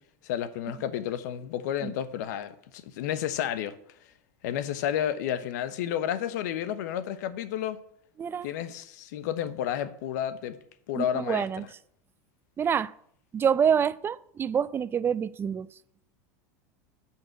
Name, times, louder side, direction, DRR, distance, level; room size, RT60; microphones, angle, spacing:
voice 1, 0.2-3.7 4.4-7.8 8.4-10.6 10.9-11.7, left 10 dB, 75° left, 1.0 m, -31 dB
voice 2, 11.0-11.6 12.6-12.9 13.3-15.7, right 7 dB, 25° right, 0.4 m, -26 dB
10.5 x 5.8 x 7.5 m
supercardioid pair, 120°, 9 cm